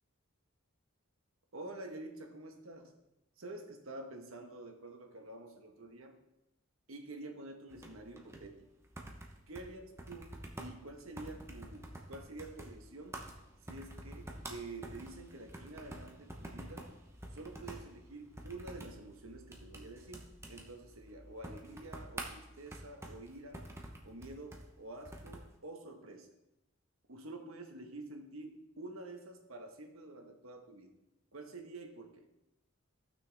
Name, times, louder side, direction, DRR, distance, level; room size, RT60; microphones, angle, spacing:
voice 1, 1.5-2.9 3.4-6.2 6.9-8.7 9.5-13.2 13.6-16.9 17.3-23.6 24.0-26.3 27.1-30.9 31.3-32.3, right 2 dB, 80° right, 4 dB, 1.4 m, -48 dB
sound 1, 7.7-25.5, right 1 dB, 15° right, 0.9 m, -49 dB
15.0 x 6.1 x 3.5 m, 0.91 s
head